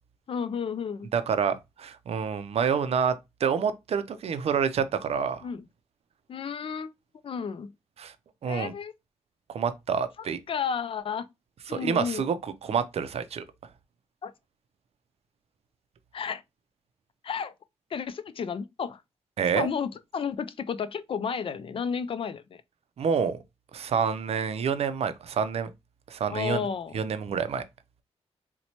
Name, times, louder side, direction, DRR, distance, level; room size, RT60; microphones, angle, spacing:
voice 1, 0.3-1.1 5.4-5.6 6.3-6.9 7.2-7.7 8.4-8.9 10.2-11.3 11.7-12.3 14.2-14.3 16.1-16.4 17.2-17.5 17.9-19.0 19.5-22.6 26.3-26.9, left 7 dB, 55° left, 0.4 m, -32 dB
voice 2, 1.1-3.1 3.4-5.4 8.0-8.1 8.4-8.7 9.5-10.4 11.7-13.4 19.4-19.7 23.0-23.4 23.7-25.7 26.1-26.7 26.9-27.6, right 6 dB, 65° right, 0.4 m, -27 dB
4.1 x 2.2 x 2.8 m
cardioid pair, 85°, 11 cm